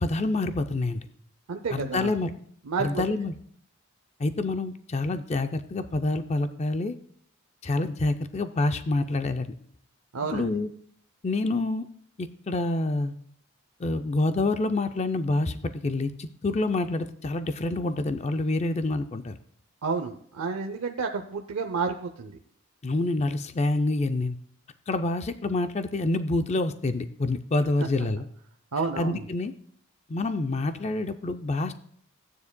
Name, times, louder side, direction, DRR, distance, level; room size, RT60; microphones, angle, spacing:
voice 1, 0.0-1.1 1.7-2.3 2.8-3.4 4.2-7.0 7.6-9.5 10.3-10.7 11.2-11.9 12.2-13.1 13.8-19.4 22.8-24.4 24.9-28.3 29.0-29.5 30.1-31.7, left 2 dB, 30° left, 9 dB, 0.4 m, -27 dB
voice 2, 1.5-2.1 2.7-3.0 10.1-10.5 19.8-22.3 28.7-29.3, right 4 dB, 85° right, 4 dB, 0.6 m, -30 dB
15.0 x 9.5 x 2.2 m, 0.63 s
head